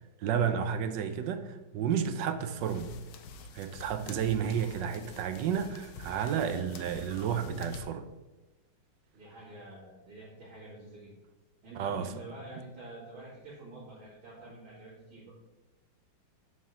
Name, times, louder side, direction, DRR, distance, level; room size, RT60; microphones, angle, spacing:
voice 1, 0.2-2.9 3.5-8.1 11.8-12.1, right 8 dB, 70° right, 1.2 m, -31 dB
sound 1, 2.6-7.8, left 4 dB, 85° left, 1.5 m, -48 dB
voice 2, 9.1-11.1 11.6-15.2, right 2 dB, 90° right, 3.4 m, -47 dB
7.4 x 4.4 x 6.8 m
omnidirectional pair, 2.2 m